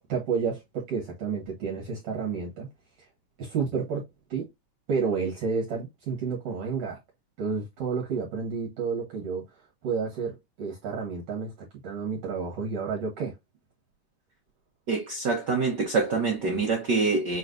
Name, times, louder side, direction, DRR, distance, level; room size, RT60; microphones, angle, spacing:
voice 1, 0.0-2.7 3.4-4.1 4.3-4.5 4.9-7.0 7.4-13.3, right 5 dB, 60° right, 2.1 m, -30 dB
voice 2, 14.9-17.4, right 4 dB, 75° right, 0.9 m, -25 dB
6.2 x 3.2 x 2.6 m
omnidirectional pair, 3.5 m